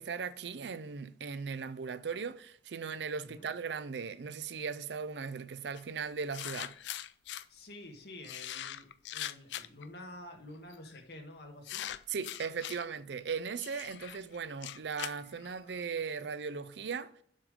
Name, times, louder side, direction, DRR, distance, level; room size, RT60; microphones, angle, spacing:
voice 1, 0.0-6.7 12.1-17.1, right 5 dB, 75° right, 0.5 m, -38 dB
sound 1, 5.7-5.8 6.3-7.4 8.2-9.9 10.7-11.0 11.6-12.9 13.6-15.8, left 12 dB, 80° left, 0.4 m, -42 dB
voice 2, 7.5-11.9, left 1 dB, 60° left, 1.6 m, -49 dB
7.4 x 5.3 x 5.0 m
head